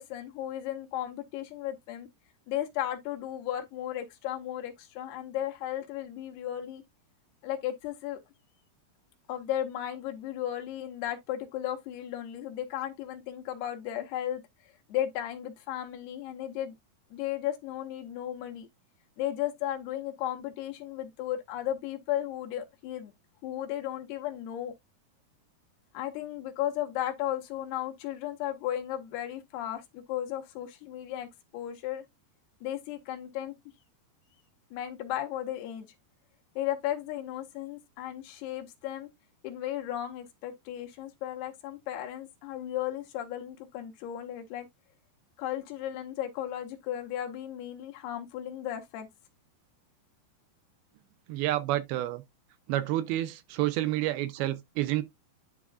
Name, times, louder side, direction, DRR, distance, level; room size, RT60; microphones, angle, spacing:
voice 1, 0.0-2.1 2.5-6.8 7.4-8.2 9.3-14.4 14.9-16.7 17.1-18.7 19.2-23.1 23.4-24.7 25.9-31.3 31.5-32.0 32.6-33.5 34.7-35.9 36.6-39.1 39.4-44.7 45.4-49.1, left 12 dB, 80° left, 3.0 m, -35 dB
voice 2, 51.3-52.2 52.7-55.0, right 15 dB, 80° right, 2.4 m, -29 dB
10.5 x 3.6 x 2.4 m
omnidirectional pair, 4.6 m